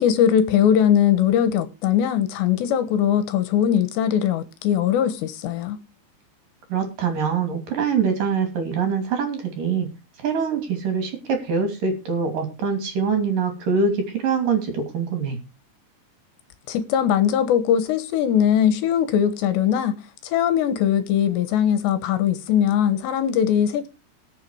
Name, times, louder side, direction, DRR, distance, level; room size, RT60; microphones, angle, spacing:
voice 1, 0.0-5.8 16.7-20.0 20.2-23.9, left 9 dB, 75° left, 3.2 m, -20 dB
voice 2, 6.7-9.9 10.2-15.4, right 5 dB, 50° right, 4.0 m, -24 dB
19.0 x 7.3 x 4.8 m
omnidirectional pair, 5.2 m